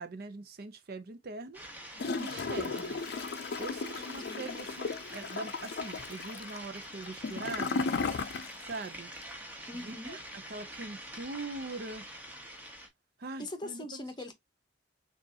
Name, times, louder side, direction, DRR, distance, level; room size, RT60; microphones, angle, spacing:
voice 1, 0.0-1.6 2.2-3.0 3.6-8.3 8.6-9.1 9.7-10.2 10.5-12.0 13.2-14.0, right 3 dB, 60° right, 0.6 m, -42 dB
sound 1, 1.5-12.9, right 1 dB, 10° right, 1.0 m, -46 dB
Gurgling / Toilet flush, 2.0-8.8 9.1-9.2, left 4 dB, 65° left, 0.4 m, -35 dB
voice 2, 3.8-4.5 9.7-10.2 13.4-14.3, left 1 dB, 25° left, 0.9 m, -42 dB
6.2 x 2.5 x 2.7 m
head